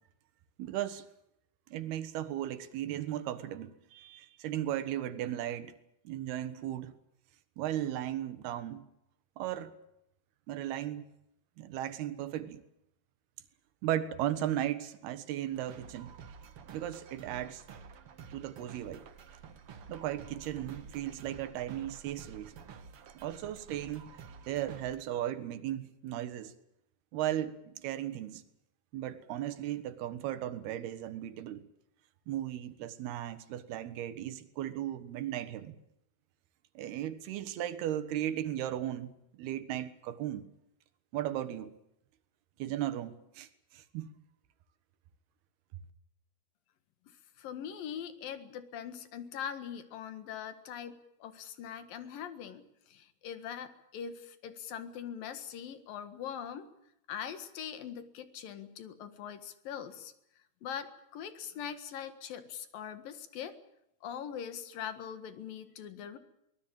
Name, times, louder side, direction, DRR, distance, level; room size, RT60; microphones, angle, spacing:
voice 1, 0.6-1.1 1.7-5.7 6.0-6.9 7.6-8.9 9.4-9.7 10.5-11.1 11.6-12.6 13.8-16.1 16.7-17.6 18.3-19.0 19.9-22.5 23.1-24.0 24.5-26.5 27.1-28.4 28.9-31.6 32.3-35.8 36.7-40.4 41.1-41.7 42.6-44.1, right 12 dB, 85° right, 3.4 m, -36 dB
sound 1, 15.5-25.0, right 6 dB, 50° right, 1.8 m, -50 dB
voice 2, 47.4-56.7 57.1-60.1 60.6-63.5 64.0-66.2, left 8 dB, 65° left, 3.3 m, -42 dB
23.5 x 19.5 x 8.9 m
omnidirectional pair, 4.4 m